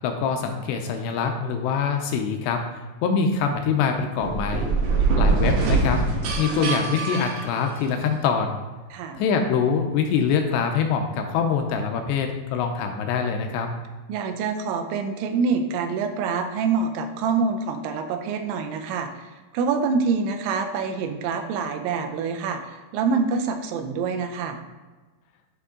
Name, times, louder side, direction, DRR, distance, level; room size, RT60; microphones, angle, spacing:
voice 1, 0.0-2.6 3.0-4.7 5.2-6.0 6.4-8.6 9.2-13.7, left 6 dB, 80° left, 5 dB, 2.6 m, -24 dB
sound 1, 4.2-8.2, right 3 dB, 70° right, 2.2 m, -23 dB
voice 2, 8.9-9.2 14.1-19.3 19.5-24.6, right 5 dB, 85° right, 6 dB, 3.0 m, -26 dB
11.0 x 3.7 x 3.7 m, 1.2 s
omnidirectional pair, 5.2 m